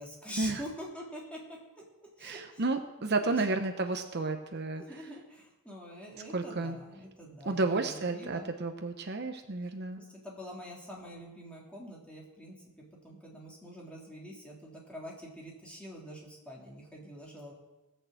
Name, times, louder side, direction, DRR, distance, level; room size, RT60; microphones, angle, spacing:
voice 1, 0.0-1.8 2.2-2.6 3.2-3.6 4.7-8.5 10.0-17.5, equal, 5° left, -4 dB, 3.2 m, -46 dB
voice 2, 2.2-4.8 6.3-6.8 7.4-10.0, right 3 dB, 50° right, 6 dB, 0.9 m, -31 dB
18.5 x 6.6 x 7.8 m, 1.1 s
head